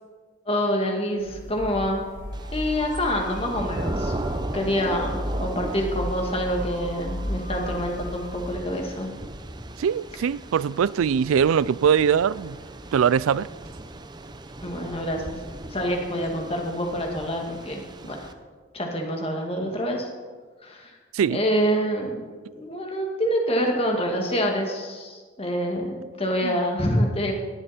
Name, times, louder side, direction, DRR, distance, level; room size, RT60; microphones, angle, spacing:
voice 1, 0.5-2.1 2.5-4.1 4.5-9.1 14.6-15.4 15.7-18.3 18.7-20.1 20.6-21.0 21.3-22.2 22.5-27.3, equal, 30° left, 2.1 m, -26 dB
sound 1, 1.2-8.5, equal, 60° left, 5.3 m, -34 dB
Thunder / Rain, 2.3-18.3, right 1 dB, 20° right, 0.6 m, -37 dB
voice 2, 9.8-12.6 12.9-13.5 21.1-21.4 26.4-26.6, right 7 dB, 90° right, 0.3 m, -22 dB
17.5 x 11.0 x 4.4 m
head